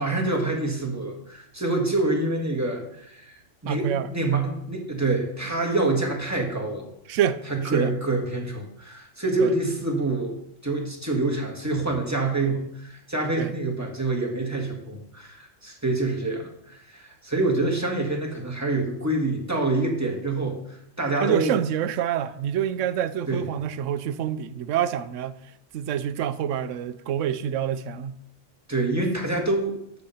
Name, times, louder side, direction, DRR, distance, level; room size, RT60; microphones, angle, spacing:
voice 1, 0.0-6.9 7.5-10.4 10.6-21.6 23.3-23.4 28.7-29.8, right 2 dB, 15° right, 1.7 m, -26 dB
voice 2, 3.6-4.1 7.1-7.9 9.4-9.5 13.4-13.5 21.2-25.4 25.7-28.2, right 9 dB, 75° right, 1.0 m, -27 dB
13.5 x 4.6 x 5.6 m
omnidirectional pair, 1.3 m